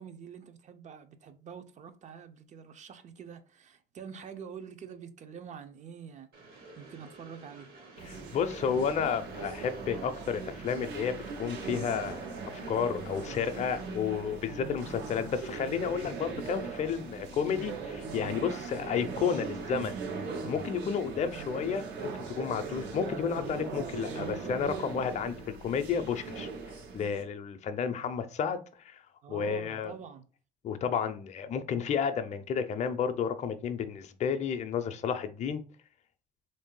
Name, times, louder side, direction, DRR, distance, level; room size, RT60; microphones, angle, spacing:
voice 1, 0.0-7.7 29.2-30.3, right 7 dB, 45° right, 0.6 m, -46 dB
Train, 6.3-14.0, right 3 dB, 65° right, 1.5 m, -51 dB
voice 2, 8.0-19.9 20.4-26.5 26.9-28.6 28.8-29.0 29.3-29.9 30.6-35.6, left 7 dB, 45° left, 0.5 m, -32 dB
sound 1, 8.0-27.2, right 4 dB, 85° right, 0.9 m, -39 dB
3.3 x 2.6 x 3.7 m
cardioid pair, 110°, 17 cm